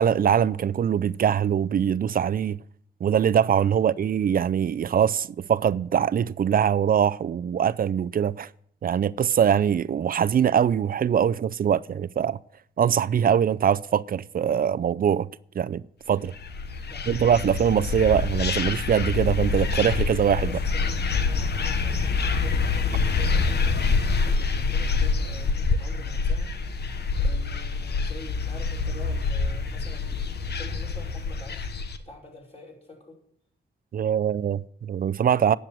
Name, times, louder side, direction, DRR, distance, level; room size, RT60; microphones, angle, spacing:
voice 1, 0.0-2.6 3.0-8.5 8.8-12.4 12.8-15.3 15.6-16.3 17.1-20.6 33.9-35.5, right 8 dB, 50° right, 0.5 m, -23 dB
sound 1, 16.3-32.0, left 4 dB, 60° left, 1.3 m, -26 dB
voice 2, 16.8-18.1 20.5-23.8 24.3-26.5 27.2-30.2 30.6-31.7 32.0-33.2, left 2 dB, 30° left, 5.2 m, -46 dB
10.0 x 7.8 x 9.1 m
cardioid pair, 75°, 20 cm